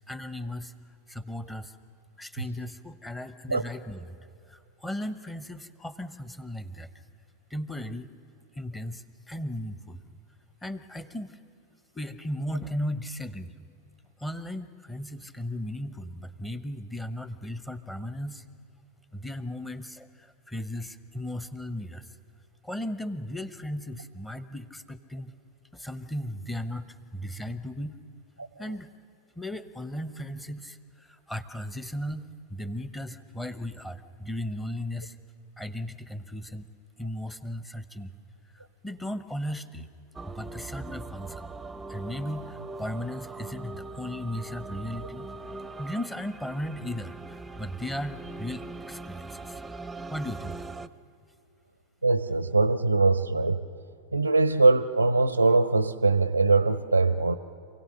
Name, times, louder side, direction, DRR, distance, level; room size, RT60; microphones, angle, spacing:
voice 1, 0.1-1.8 2.2-4.2 4.5-6.9 7.5-8.1 8.5-10.0 10.6-11.4 11.9-13.5 14.2-18.4 19.1-22.2 22.6-25.3 25.7-28.0 28.6-28.9 29.4-35.2 35.6-36.7 37.0-38.1 38.5-39.9 40.2-41.5 41.9-45.3 45.8-49.6 50.1-50.6, left 1 dB, 10° left, 12 dB, 0.9 m, -36 dB
sound 1, 40.1-50.9, right 3 dB, 10° right, 0.6 m, -41 dB
voice 2, 52.0-53.7 54.1-57.3, right 3 dB, 90° right, 14 dB, 0.5 m, -22 dB
27.0 x 17.0 x 6.5 m, 2.4 s
figure-of-eight pair, 90°, 0 cm